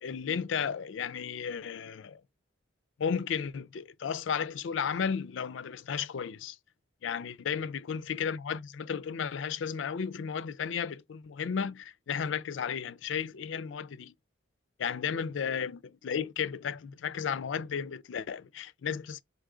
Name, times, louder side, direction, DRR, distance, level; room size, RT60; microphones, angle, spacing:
voice 1, 0.0-2.2 3.0-6.6 7.0-14.1 14.8-19.2, left 7 dB, 65° left, 0.4 m, -34 dB
3.7 x 2.7 x 4.8 m
head